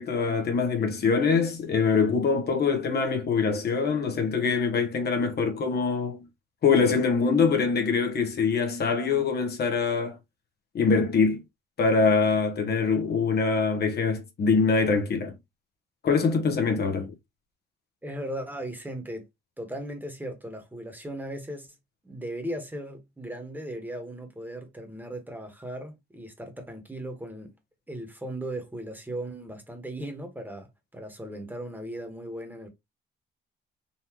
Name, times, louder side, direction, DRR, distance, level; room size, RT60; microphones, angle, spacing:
voice 1, 0.0-6.3 6.6-10.2 10.7-11.4 11.8-15.4 16.0-17.1, left 5 dB, 55° left, 1.0 m, -24 dB
voice 2, 18.0-19.3 19.6-21.7 22.0-27.5 27.9-32.7, right 1 dB, 10° right, 1.3 m, -37 dB
4.0 x 2.7 x 2.9 m
cardioid pair, 90°, 20 cm